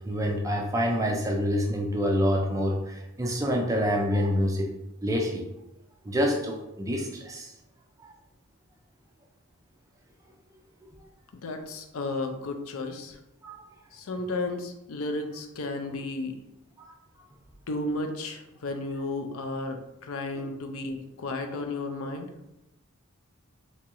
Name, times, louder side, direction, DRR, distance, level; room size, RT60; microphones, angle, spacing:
voice 1, 0.1-4.7 5.0-5.4 6.0-7.5 13.4-13.6 16.8-16.9 20.4-20.5, equal, 15° right, 1 dB, 0.4 m, -27 dB
voice 2, 11.3-13.2 13.9-16.4 17.7-22.3, left 2 dB, 70° left, 5 dB, 0.5 m, -33 dB
3.5 x 3.0 x 2.9 m, 0.89 s
head